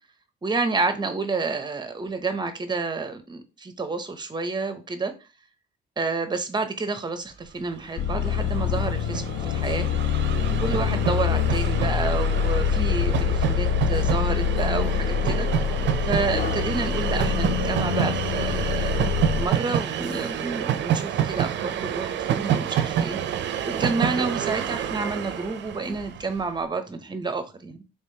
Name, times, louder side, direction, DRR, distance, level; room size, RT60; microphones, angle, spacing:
voice 1, 0.4-5.1 6.0-9.9 10.6-15.7 16.0-18.9 19.3-23.2 23.7-27.8, right 4 dB, 20° right, 9 dB, 0.7 m, -29 dB
Train, 7.7-7.8 8.0-26.4, right 9 dB, 65° right, 0.4 m, -28 dB
sound 1, 8.0-19.5, left 8 dB, 60° left, 0.4 m, -25 dB
sound 2, 8.2-17.3, left 2 dB, 30° left, 1.6 m, -40 dB
3.3 x 3.3 x 2.7 m, 0.30 s
cardioid pair, 90°, 20 cm